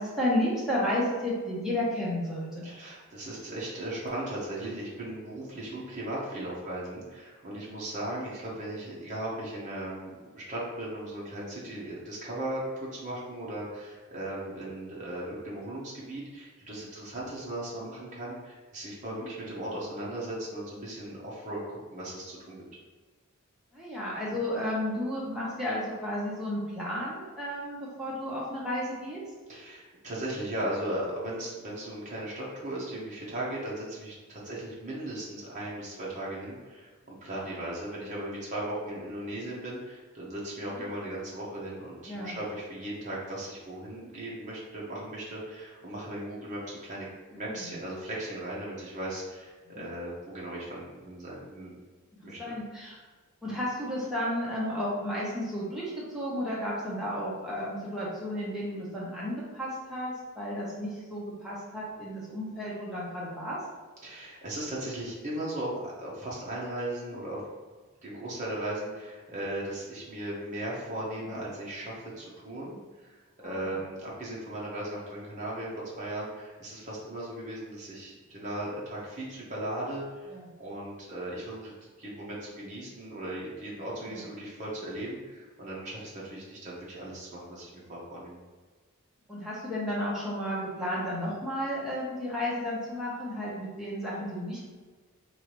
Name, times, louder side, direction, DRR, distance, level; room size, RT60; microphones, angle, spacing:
voice 1, 0.0-2.7 6.0-6.1 19.2-19.3 23.7-29.2 40.7-40.9 42.1-42.3 47.3-47.7 49.7-49.8 52.4-53.0 53.4-63.6 71.3-71.4 73.4-73.7 80.3-80.5 84.1-84.2 89.3-94.6, left 1 dB, ahead, -7 dB, 1.0 m, -33 dB
voice 2, 2.6-22.6 29.5-51.7 52.2-52.5 53.4-53.6 64.0-67.4 68.0-75.7 76.0-80.3 80.6-88.4, right 1 dB, 35° right, -6 dB, 1.1 m, -37 dB
4.6 x 2.8 x 3.1 m, 1.4 s
head